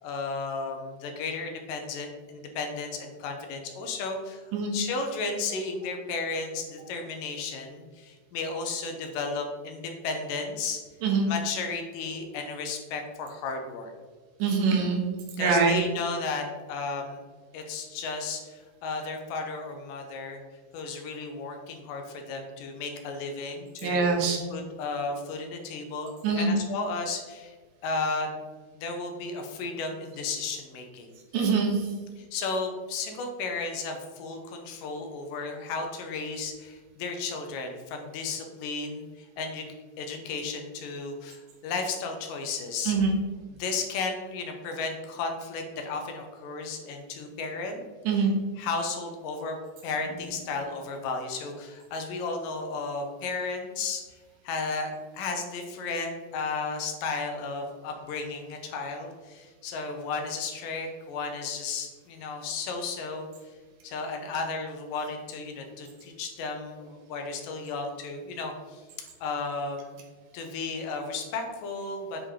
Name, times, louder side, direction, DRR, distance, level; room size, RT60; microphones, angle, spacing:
voice 1, 0.0-10.8 11.2-13.9 15.4-17.2 17.5-20.4 20.7-24.0 24.5-27.5 27.8-28.4 28.8-31.1 32.2-43.0 43.6-47.8 48.1-48.3 48.6-49.6 49.8-54.0 54.4-63.3 63.8-68.8 69.2-70.0 70.3-72.2, left 4 dB, 70° left, 3 dB, 2.3 m, -34 dB
voice 2, 14.4-15.1 15.4-15.8 23.8-24.4 26.2-26.5 31.3-31.8 42.9-43.1 48.1-48.3, right 5 dB, 70° right, 1 dB, 2.6 m, -23 dB
8.4 x 5.1 x 3.7 m, 1.4 s
omnidirectional pair, 4.4 m